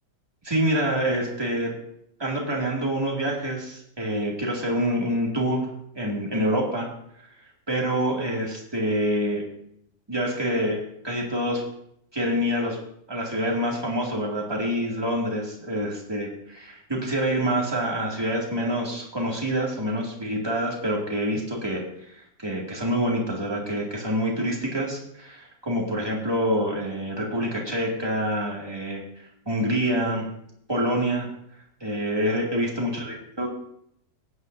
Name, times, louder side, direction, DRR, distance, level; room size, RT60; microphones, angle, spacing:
voice 1, 0.4-1.7 2.2-5.7 5.9-6.9 7.7-9.4 10.1-11.6 12.1-12.8 13.1-21.8 22.1-29.0 29.5-30.3 30.7-31.3 31.8-33.5, equal, 15° right, -2 dB, 2.2 m, -26 dB
17.5 x 9.6 x 2.7 m, 0.73 s
omnidirectional pair, 1.9 m